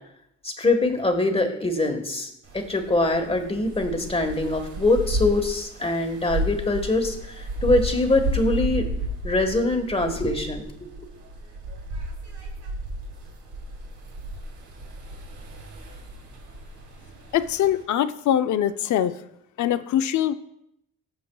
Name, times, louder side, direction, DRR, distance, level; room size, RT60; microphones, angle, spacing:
voice 1, 0.4-8.9 9.2-10.7 11.0-11.1, left 2 dB, 20° left, 5 dB, 1.5 m, -23 dB
sound 1, 2.4-17.8, right 1 dB, 65° right, 2.9 m, -33 dB
voice 2, 17.3-19.2 19.6-20.3, left 10 dB, 70° left, 12 dB, 0.6 m, -23 dB
15.5 x 7.5 x 2.3 m, 0.78 s
cardioid pair, 105°, 30 cm